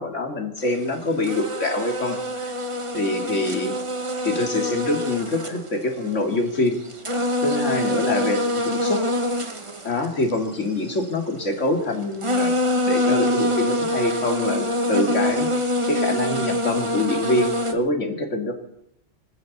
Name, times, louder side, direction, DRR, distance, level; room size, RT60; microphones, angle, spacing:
voice 1, 0.0-2.5 2.9-3.7 4.2-6.8 7.4-9.0 9.8-12.6 12.9-15.5 15.9-18.5, left 2 dB, 75° left, 3 dB, 2.8 m, -25 dB
sound 1, 0.7-0.9 1.2-6.3 6.7-11.1 11.9-12.0 12.2-17.7, left 1 dB, 25° right, 1.2 m, -25 dB
26.0 x 13.5 x 4.2 m, 0.75 s
omnidirectional pair, 1.3 m